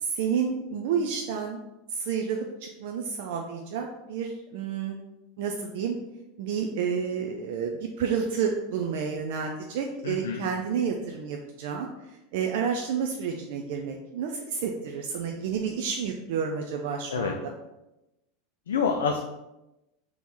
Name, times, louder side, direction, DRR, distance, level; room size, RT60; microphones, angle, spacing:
voice 1, 0.0-1.6 1.9-5.0 5.4-6.0 6.4-17.5, right 6 dB, 70° right, 2 dB, 0.4 m, -30 dB
voice 2, 10.0-10.5 17.1-17.3 18.7-19.2, left 6 dB, 85° left, 4 dB, 0.3 m, -27 dB
3.6 x 3.0 x 4.0 m, 0.95 s
hypercardioid pair, 95°, 0 cm